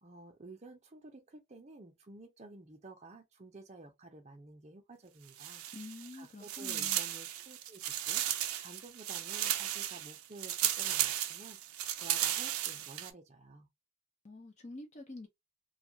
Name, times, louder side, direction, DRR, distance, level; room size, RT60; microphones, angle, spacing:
voice 1, 0.0-5.6 6.1-13.7, right 2 dB, 30° right, 0.6 m, -52 dB
sound 1, 5.3-6.2 6.4-13.1, right 12 dB, 85° right, 0.4 m, -35 dB
voice 2, 5.7-7.0 14.2-15.3, left 2 dB, 30° left, 0.5 m, -47 dB
2.3 x 2.3 x 2.6 m
head